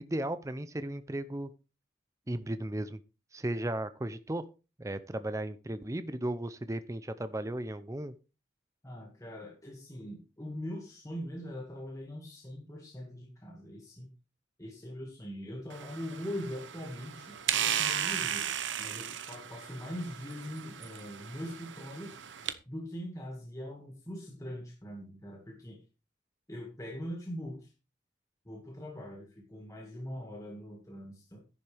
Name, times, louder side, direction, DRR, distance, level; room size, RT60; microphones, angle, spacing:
voice 1, 0.0-1.5 2.3-3.0 3.3-4.5 4.8-8.1, right 1 dB, 15° right, 12 dB, 0.5 m, -35 dB
voice 2, 8.8-14.1 14.6-22.1 22.7-25.8 26.5-27.7 28.5-31.5, equal, 15° left, -1 dB, 1.9 m, -42 dB
sound 1, 15.7-22.5, right 9 dB, 85° right, 0.9 m, -36 dB
10.5 x 10.5 x 3.4 m, 0.31 s
head